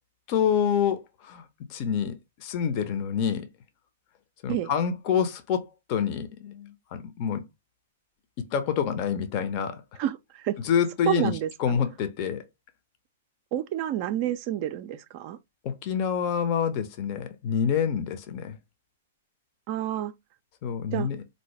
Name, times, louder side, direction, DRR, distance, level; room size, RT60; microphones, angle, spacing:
voice 1, 0.3-3.5 4.4-7.4 8.4-10.0 10.6-11.3 11.6-12.4 15.6-18.6 20.6-21.2, left 7 dB, 45° left, 0.7 m, -27 dB
voice 2, 10.0-10.6 11.1-11.5 13.5-15.4 19.7-20.1 20.9-21.1, right 12 dB, 45° right, 0.4 m, -29 dB
3.9 x 2.7 x 3.1 m
hypercardioid pair, 110°, 0 cm